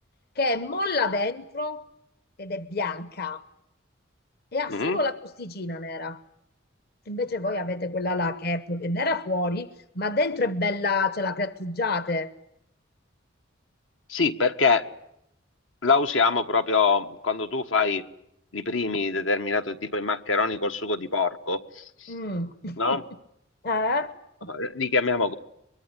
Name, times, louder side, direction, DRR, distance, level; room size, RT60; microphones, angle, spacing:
voice 1, 0.4-1.8 2.4-3.4 4.5-6.2 7.1-9.7 9.9-12.3 22.1-23.0 23.6-24.1 24.4-24.5, left 2 dB, 50° left, 1.0 m, -28 dB
voice 2, 14.1-14.9 15.8-18.0 18.5-22.1 22.8-23.0 24.5-25.3, left 4 dB, 80° left, 1.5 m, -24 dB
23.5 x 23.0 x 9.9 m
head